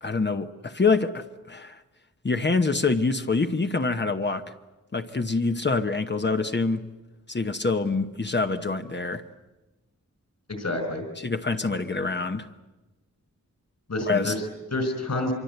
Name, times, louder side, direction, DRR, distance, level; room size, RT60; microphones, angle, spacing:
voice 1, 0.0-1.8 2.2-4.5 4.9-6.9 7.3-9.2 11.2-12.5 14.0-14.4, left 3 dB, 35° left, 1.0 m, -26 dB
voice 2, 10.5-11.0 13.9-15.3, left 1 dB, 60° left, 5.2 m, -28 dB
25.5 x 24.0 x 8.1 m
wide cardioid pair, 115°, 31 cm